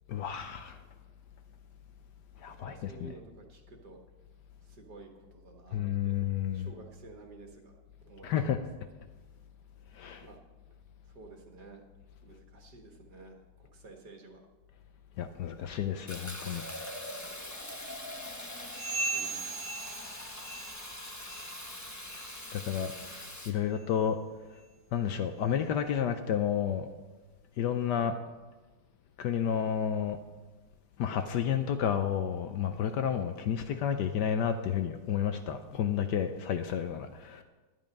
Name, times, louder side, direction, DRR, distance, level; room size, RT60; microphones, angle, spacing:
voice 1, 0.1-0.8 2.4-3.1 5.7-6.7 8.2-8.6 9.9-10.3 15.2-16.6 22.5-24.2 24.9-26.9 27.6-28.1 29.2-30.2 31.0-37.4, left 8 dB, 70° left, 8 dB, 1.0 m, -31 dB
voice 2, 2.6-4.0 4.7-6.2 6.5-7.7 8.1-8.5 10.2-10.4 11.1-11.9 12.2-13.4 13.7-14.4 19.1-19.7 27.9-28.1, right 3 dB, 50° right, 2 dB, 2.0 m, -51 dB
Fill (with liquid), 16.1-23.5, left 1 dB, 20° left, 0.5 m, -42 dB
sound 1, 18.7-20.9 21.2-21.6 22.0-22.3 22.9-23.0 23.7-23.8 24.6-24.7, right 3 dB, 70° right, 2.1 m, -38 dB
11.5 x 10.5 x 5.3 m, 1.2 s
omnidirectional pair, 2.3 m